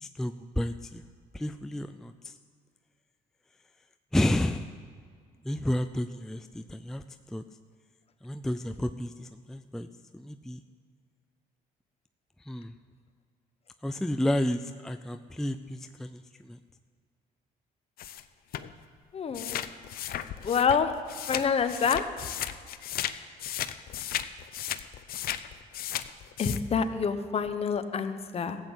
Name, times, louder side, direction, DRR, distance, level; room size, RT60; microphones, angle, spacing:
voice 1, 0.0-1.0 1.3-2.3 4.1-4.7 5.5-7.0 7.3-7.4 8.2-9.9 10.1-10.6 12.5-12.7 13.8-16.2 16.5-16.6, left 1 dB, 5° left, 9 dB, 0.4 m, -31 dB
sound 1, 18.0-18.2 18.5-18.7 19.3-23.1 23.4-26.6, left 11 dB, 60° left, 0.7 m, -35 dB
voice 2, 19.1-19.6 20.4-20.9 21.3-22.0 26.4-28.6, left 6 dB, 35° left, 9 dB, 1.0 m, -27 dB
15.0 x 8.2 x 8.1 m, 2.1 s
cardioid pair, 110°, 17 cm